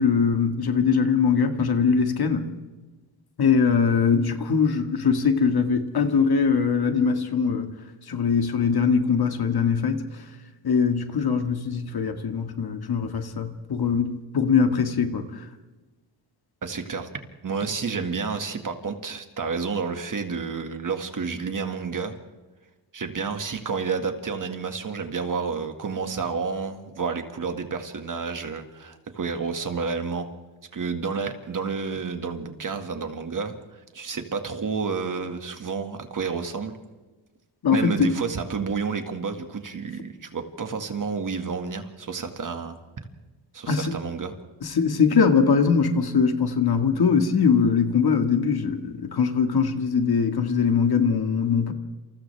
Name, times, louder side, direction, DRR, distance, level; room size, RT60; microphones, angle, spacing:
voice 1, 0.0-2.5 3.4-7.7 8.1-10.1 10.6-15.2 37.6-38.1 43.7-43.9 44.6-51.7, left 6 dB, 55° left, 1.9 m, -22 dB
voice 2, 16.6-22.2 22.9-30.3 30.7-36.7 37.7-42.8 43.5-44.3, right 5 dB, 45° right, 2.0 m, -30 dB
28.5 x 27.5 x 3.5 m
cardioid pair, 115°, 46 cm